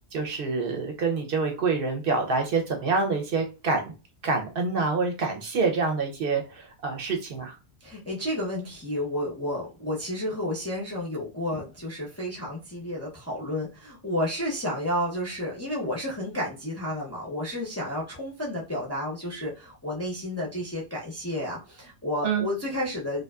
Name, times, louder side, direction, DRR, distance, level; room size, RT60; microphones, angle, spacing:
voice 1, 0.1-3.9 4.2-7.6 22.2-22.5, right 4 dB, 60° right, 2 dB, 0.8 m, -26 dB
voice 2, 7.8-23.2, left 1 dB, 20° left, -4 dB, 0.4 m, -31 dB
2.5 x 2.2 x 2.2 m, 0.30 s
omnidirectional pair, 1.1 m